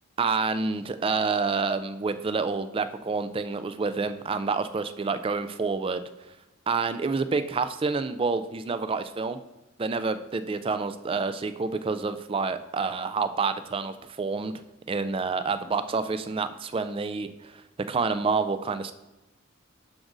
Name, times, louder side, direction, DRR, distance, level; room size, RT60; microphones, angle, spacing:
voice 1, 0.2-6.0 6.7-9.4 9.8-14.5 14.9-17.5 17.9-18.9, right 4 dB, 25° right, 12 dB, 0.3 m, -28 dB
12.0 x 5.0 x 2.6 m, 1.0 s
head